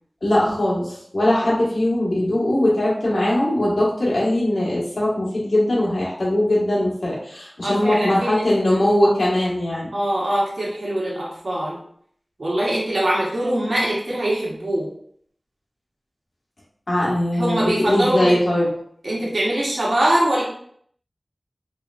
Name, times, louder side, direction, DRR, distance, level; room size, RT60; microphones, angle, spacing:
voice 1, 0.2-9.9 16.9-18.7, left 1 dB, 75° left, -7 dB, 1.5 m, -20 dB
voice 2, 7.6-8.8 9.9-11.8 12.4-14.9 17.3-18.4 19.0-20.4, right 1 dB, 80° right, -5 dB, 1.1 m, -23 dB
4.8 x 3.0 x 2.4 m, 0.64 s
wide cardioid pair, 45°, 0 cm